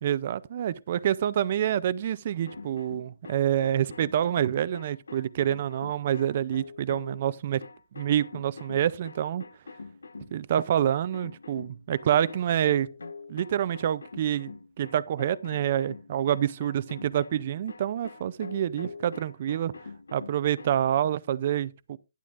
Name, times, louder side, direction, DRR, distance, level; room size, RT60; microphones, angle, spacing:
voice 1, 0.0-7.6 8.0-9.4 10.3-12.9 13.3-19.7 20.1-22.0, right 10 dB, 30° right, 0.4 m, -27 dB
sound 1, 2.3-7.2 7.6-20.7, left 4 dB, 90° left, 1.7 m, -44 dB
12.0 x 11.0 x 2.5 m
hypercardioid pair, 175°, 0 cm